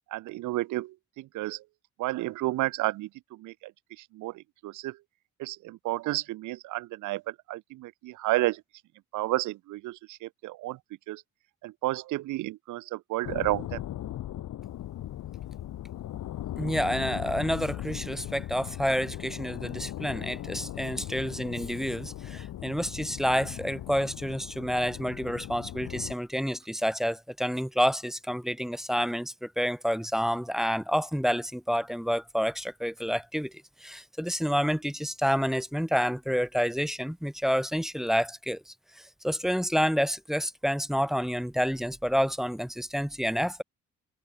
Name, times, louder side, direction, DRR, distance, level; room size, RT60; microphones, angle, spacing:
voice 1, 0.1-1.6 2.0-3.1 3.4-3.5 4.1-5.0 5.4-8.6 9.1-10.8 11.1-11.2 11.6-13.8, right 18 dB, 75° right, 0.6 m, -31 dB
sound 1, 13.2-26.1, left 12 dB, 75° left, 3.1 m, -38 dB
voice 2, 16.6-33.5 33.8-43.6, equal, ahead, 0.9 m, -29 dB
cardioid pair, 90°, 30 cm